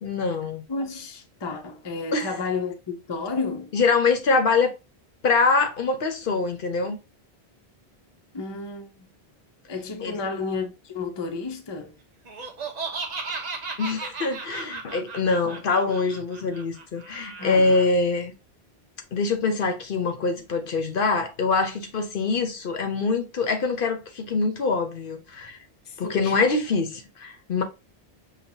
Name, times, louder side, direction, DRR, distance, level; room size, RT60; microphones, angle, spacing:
voice 1, 0.0-0.6 2.1-2.4 3.7-4.7 5.2-7.0 10.0-10.2 13.8-18.3 19.1-25.6 26.0-27.6, left 4 dB, 60° left, 0.8 m, -24 dB
voice 2, 0.7-3.7 8.3-9.1 9.7-11.9 17.4-17.7 25.9-26.4, left 4 dB, 30° left, 0.5 m, -32 dB
Laughter, 12.3-17.9, right 4 dB, 45° right, 0.7 m, -35 dB
5.8 x 2.2 x 2.7 m
omnidirectional pair, 1.1 m